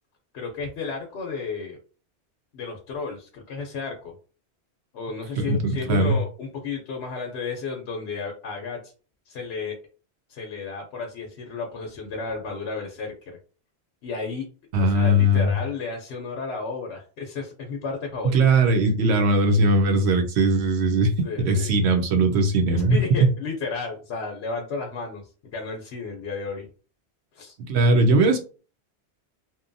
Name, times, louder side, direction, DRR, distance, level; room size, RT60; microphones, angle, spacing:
voice 1, 0.3-1.8 2.5-4.1 4.9-8.8 9.3-9.7 10.3-13.4 14.0-14.5 14.8-18.4 21.2-21.7 22.9-26.7 27.3-27.5, left 4 dB, 75° left, 0.9 m, -33 dB
voice 2, 5.4-6.1 14.7-15.5 18.2-23.3 27.7-28.4, right 2 dB, 80° right, 0.9 m, -20 dB
2.8 x 2.2 x 2.5 m
omnidirectional pair, 1.1 m